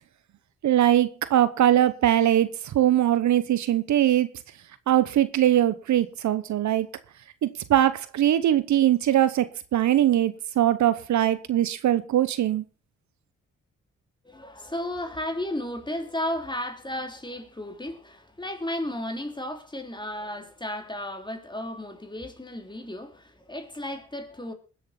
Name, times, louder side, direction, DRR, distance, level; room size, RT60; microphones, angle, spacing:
voice 1, 0.6-4.3 4.9-6.9 7.4-12.6, right 12 dB, 70° right, 0.9 m, -21 dB
voice 2, 14.2-24.5, left 1 dB, 15° left, 3.3 m, -34 dB
21.0 x 7.6 x 4.2 m
supercardioid pair, 45°, 30 cm